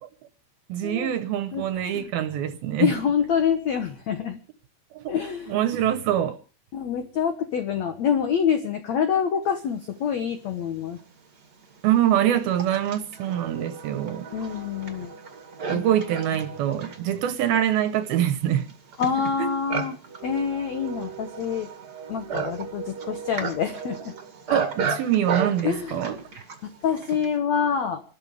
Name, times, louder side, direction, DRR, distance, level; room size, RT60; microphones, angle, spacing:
voice 1, 0.7-2.9 5.0-5.1 5.5-6.4 11.8-14.3 15.7-18.7 19.4-19.5 24.5-26.2, right 11 dB, 75° right, 2.5 m, -24 dB
voice 2, 2.8-4.4 5.1-5.6 6.7-11.0 14.3-15.1 15.7-15.8 19.0-20.0 20.2-21.7 22.1-24.1 25.6-26.2 26.6-28.0, left 7 dB, 85° left, 1.5 m, -26 dB
Livestock farm animals working animals, 10.6-10.7 11.4-27.4, right 5 dB, 40° right, 1.6 m, -34 dB
28.0 x 13.0 x 3.4 m
omnidirectional pair, 4.9 m